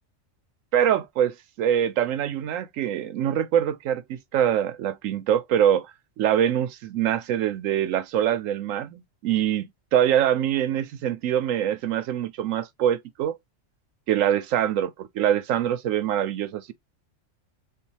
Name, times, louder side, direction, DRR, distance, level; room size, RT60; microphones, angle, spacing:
voice 1, 0.7-5.9 6.2-13.4 14.1-16.7, right 10 dB, 90° right, 1.0 m, -24 dB
6.7 x 2.4 x 2.9 m
omnidirectional pair, 1.3 m